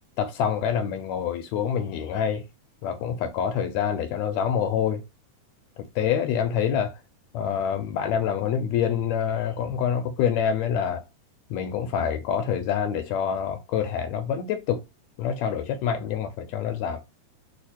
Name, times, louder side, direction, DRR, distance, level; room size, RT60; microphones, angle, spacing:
voice 1, 0.2-2.4 2.8-5.0 5.8-6.9 7.3-11.1 11.5-14.8 15.2-17.0, left 8 dB, 80° left, 1.7 m, -26 dB
4.9 x 2.4 x 4.2 m
omnidirectional pair, 3.3 m